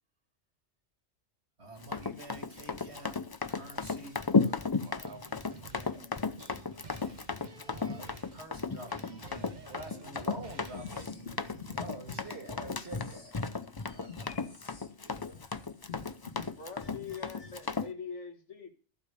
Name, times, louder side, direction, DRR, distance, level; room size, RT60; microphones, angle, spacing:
voice 1, 1.6-4.2 7.7-13.4, right 2 dB, 65° right, 2.7 m, -47 dB
Run, 1.8-17.9, left 4 dB, 30° left, 0.5 m, -34 dB
voice 2, 4.4-5.6 13.3-13.6 13.9-15.7 16.4-16.6, right 2 dB, 20° right, 1.4 m, -55 dB
sound 1, 4.9-11.0, right 4 dB, 40° right, 1.1 m, -51 dB
voice 3, 5.7-6.2 16.6-18.7, left 6 dB, 85° left, 2.2 m, -43 dB
sound 2, 10.3-12.2 12.5-17.7, left 5 dB, 55° left, 2.3 m, -48 dB
15.0 x 5.1 x 8.9 m
omnidirectional pair, 1.2 m